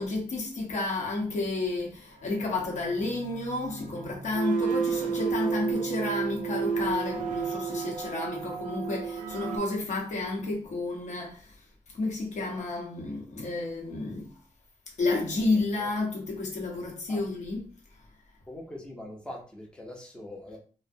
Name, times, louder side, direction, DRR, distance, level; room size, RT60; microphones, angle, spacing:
voice 1, 0.0-11.6 11.9-14.3 15.0-17.6, left 2 dB, 70° left, 0.9 m, -31 dB
sound 1, 2.3-9.6, right 6 dB, 85° right, 0.4 m, -32 dB
voice 2, 15.4-15.9 17.1-17.2 18.5-20.6, left 1 dB, 5° left, 0.6 m, -43 dB
2.4 x 2.1 x 2.5 m
wide cardioid pair, 155°, 13 cm